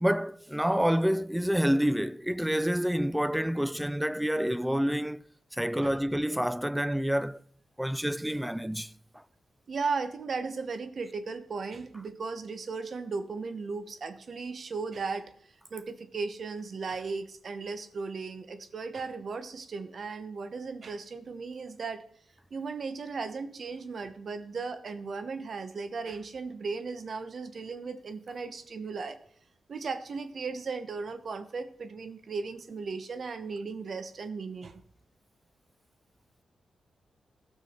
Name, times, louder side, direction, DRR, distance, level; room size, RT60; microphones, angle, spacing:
voice 1, 0.0-5.2 5.5-7.4 7.8-9.2, equal, 5° right, 0.4 m, -28 dB
voice 2, 9.7-15.3 15.7-22.0 22.5-29.2 29.7-34.8, right 4 dB, 60° right, 1.0 m, -36 dB
14.0 x 6.2 x 4.4 m
supercardioid pair, 45°, 0 cm